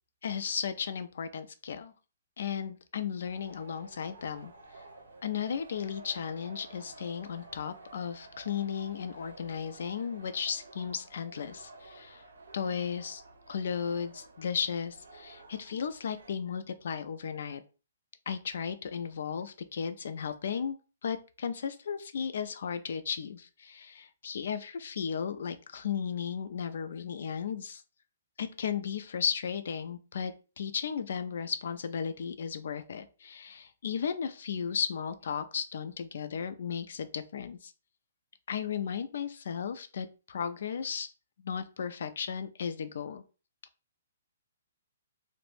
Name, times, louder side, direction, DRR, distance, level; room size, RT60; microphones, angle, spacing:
voice 1, 0.2-1.9 2.4-4.5 5.2-12.2 12.5-13.2 13.5-17.6 18.3-20.8 21.0-27.8 28.4-37.7 38.5-41.1 41.4-43.2, left 7 dB, 65° left, 11 dB, 0.4 m, -35 dB
sound 1, 3.2-16.3, right 3 dB, 90° right, 0.6 m, -52 dB
2.4 x 2.1 x 3.2 m, 0.34 s
hypercardioid pair, 145°, 0 cm